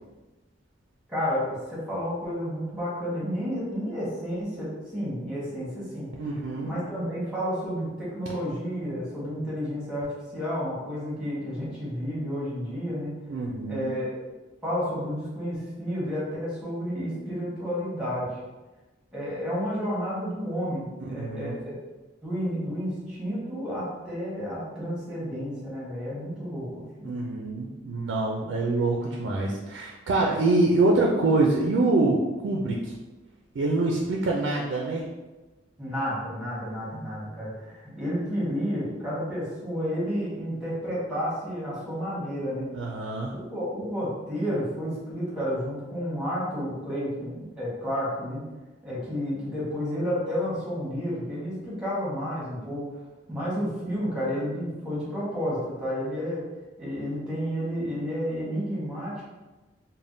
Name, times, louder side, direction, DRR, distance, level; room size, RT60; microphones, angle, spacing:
voice 1, 1.1-10.1 10.3-13.1 13.7-14.2 14.6-18.4 19.1-21.7 22.2-27.2 35.8-42.7 43.3-48.4 48.8-52.8 53.3-56.4 56.8-59.3, equal, 5° right, -8 dB, 1.1 m, -31 dB
voice 2, 6.2-6.7 13.3-14.0 21.0-21.6 27.0-32.9 33.5-35.0 42.7-43.3, right 2 dB, 80° right, -1 dB, 0.4 m, -25 dB
3.3 x 2.1 x 2.6 m, 1.1 s
head